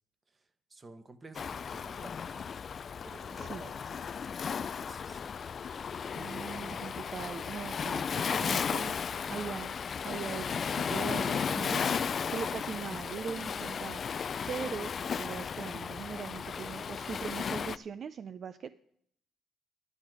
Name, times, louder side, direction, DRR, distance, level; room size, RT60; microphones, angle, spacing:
voice 1, 0.3-2.4 3.0-4.3 4.6-5.4 12.2-12.4, right 3 dB, 30° right, 10 dB, 1.1 m, -53 dB
Waves surf, 1.3-17.8, left 6 dB, 50° left, 0.3 m, -35 dB
voice 2, 6.1-9.0 9.2-9.7 10.0-14.9 15.2-18.7, right 7 dB, 55° right, 12 dB, 0.4 m, -41 dB
10.5 x 9.9 x 4.7 m, 0.69 s
cardioid pair, 90°, 0 cm